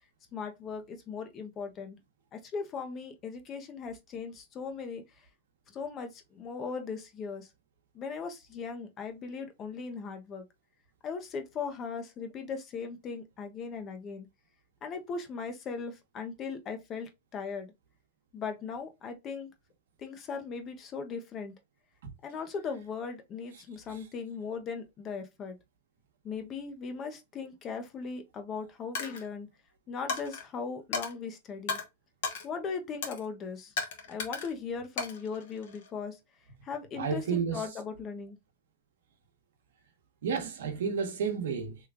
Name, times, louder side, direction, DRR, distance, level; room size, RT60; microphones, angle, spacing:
voice 1, 0.3-2.0 2.3-5.0 5.7-7.5 7.9-10.4 11.0-14.3 14.8-17.7 18.3-19.5 20.0-21.5 22.2-25.6 26.2-29.5 29.9-31.8 32.4-33.7 34.1-36.2 36.6-38.4, left 5 dB, 30° left, 0.6 m, -38 dB
Coin (dropping), 28.9-29.3 30.1-30.4 30.9-31.1 31.7-31.8 32.2-32.5 33.0-33.2 33.8-34.5 35.0-35.9, left 4 dB, 65° left, 1.0 m, -35 dB
voice 2, 37.0-37.6 40.2-41.8, right 6 dB, 80° right, 0.9 m, -31 dB
3.1 x 2.3 x 3.5 m
supercardioid pair, 140°, 0 cm